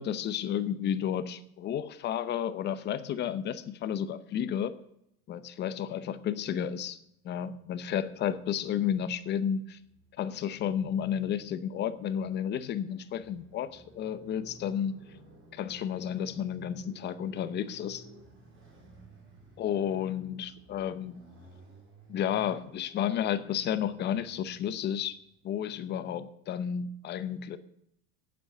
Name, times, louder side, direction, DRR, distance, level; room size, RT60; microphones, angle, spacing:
voice 1, 0.0-4.8 5.3-7.0 7.2-9.8 10.2-15.0 15.5-18.0 19.6-21.2 22.1-25.2 25.4-27.6, left 9 dB, 25° left, 12 dB, 0.7 m, -32 dB
Motorcycle, 7.5-25.5, right 2 dB, 25° right, 3.7 m, -56 dB
9.1 x 7.8 x 8.6 m, 0.76 s
supercardioid pair, 150°, 42 cm